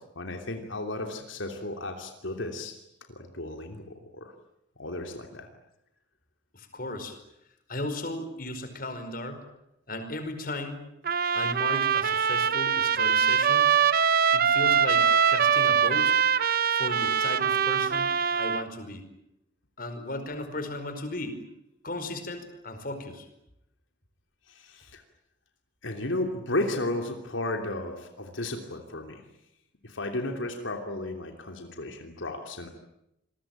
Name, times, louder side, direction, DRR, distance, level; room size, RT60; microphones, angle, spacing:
voice 1, 0.0-2.7 3.1-4.3 4.8-5.5 24.5-25.0 25.8-29.2 29.8-32.7, left 2 dB, 85° left, 4 dB, 3.1 m, -34 dB
voice 2, 6.5-7.2 7.7-9.4 9.9-10.8 11.3-13.7 14.3-16.1 16.7-19.0 19.8-21.4 21.8-23.3, left 1 dB, 50° left, 8 dB, 5.0 m, -36 dB
Trumpet, 11.1-18.7, right 7 dB, 50° right, 0.9 m, -23 dB
27.5 x 22.0 x 9.1 m, 0.84 s
head